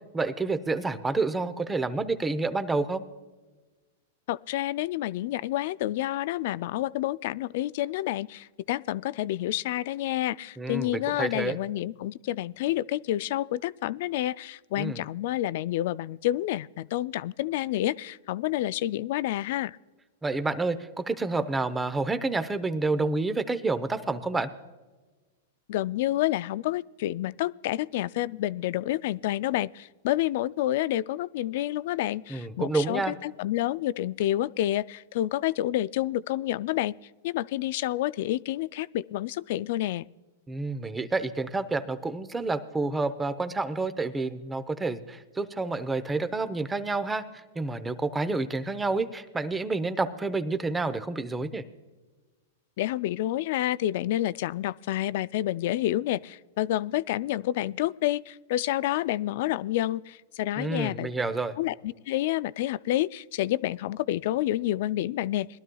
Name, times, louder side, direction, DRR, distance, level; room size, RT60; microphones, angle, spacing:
voice 1, 0.1-3.0 10.6-11.6 14.8-15.0 20.2-24.5 32.3-33.1 40.5-47.2 47.5-51.6 60.6-61.6, right 3 dB, 10° right, 11 dB, 0.8 m, -29 dB
voice 2, 4.3-19.8 25.7-36.9 37.2-40.1 52.8-61.1 61.6-65.5, left 14 dB, 60° left, 19 dB, 0.3 m, -29 dB
21.0 x 12.5 x 2.3 m, 1.3 s
hypercardioid pair, 125°, 0 cm